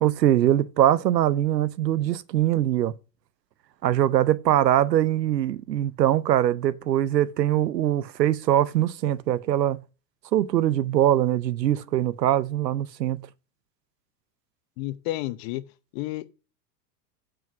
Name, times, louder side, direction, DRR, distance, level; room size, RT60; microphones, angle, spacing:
voice 1, 0.0-2.9 3.8-9.8 10.3-13.3, right 12 dB, 85° right, 0.7 m, -22 dB
voice 2, 14.8-15.6 15.9-16.3, left 16 dB, 50° left, 0.9 m, -31 dB
7.8 x 4.9 x 6.0 m
hypercardioid pair, 90°, 49 cm